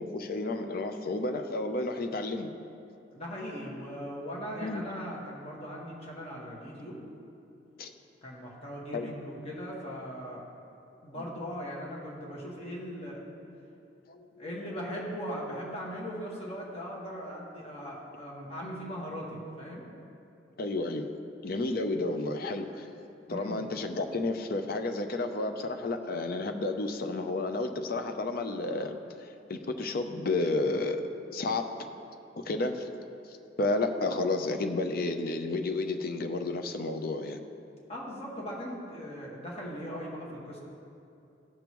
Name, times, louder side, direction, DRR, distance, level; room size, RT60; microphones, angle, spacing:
voice 1, 0.0-2.5 4.6-4.8 7.8-7.9 8.9-9.1 11.2-11.3 14.1-14.5 20.6-21.1 21.4-22.9 23.3-31.0 31.3-31.7 32.4-32.9 33.6-37.4, left 2 dB, 55° left, 6 dB, 0.6 m, -31 dB
voice 2, 3.1-7.0 8.2-10.5 11.0-13.2 14.4-19.9 23.3-23.6 37.9-40.6, equal, 35° left, -4 dB, 1.6 m, -39 dB
15.0 x 5.2 x 3.1 m, 2.8 s
head